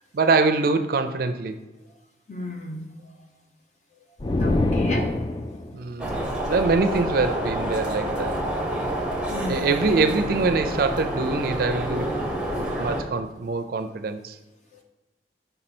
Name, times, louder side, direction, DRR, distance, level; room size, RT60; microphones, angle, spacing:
voice 1, 0.1-1.6 5.7-8.4 9.5-12.1 12.5-14.4, right 3 dB, 55° right, 9 dB, 0.4 m, -24 dB
voice 2, 2.3-2.8 4.4-5.1 5.5-5.6 9.3-9.8, left 1 dB, 40° left, 1 dB, 1.0 m, -33 dB
sound 1, 4.2-5.8, left 2 dB, 25° left, 0.3 m, -24 dB
sound 2, 6.0-13.0, right 1 dB, 5° right, 0.9 m, -28 dB
5.5 x 4.3 x 4.3 m, 1.1 s
head